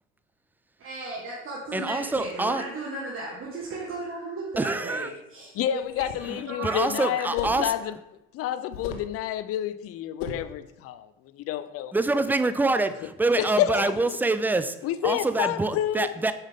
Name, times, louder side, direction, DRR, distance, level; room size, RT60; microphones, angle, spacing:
voice 1, 0.8-6.1 6.5-7.3 7.5-7.8, right 2 dB, 45° right, 1.7 m, -36 dB
voice 2, 1.7-2.6 4.6-5.1 6.3-7.7 11.9-14.8 15.0-16.3, right 2 dB, 5° right, 0.4 m, -26 dB
voice 3, 5.5-7.9 8.3-11.1 11.3-11.9 13.4-13.9 14.8-16.1, left 11 dB, 50° left, 0.5 m, -29 dB
sound 1, 5.8-6.3 7.4-7.7 8.7-9.1 10.2-10.5, left 5 dB, 85° left, 0.8 m, -37 dB
7.0 x 5.6 x 3.7 m
hypercardioid pair, 65°, 31 cm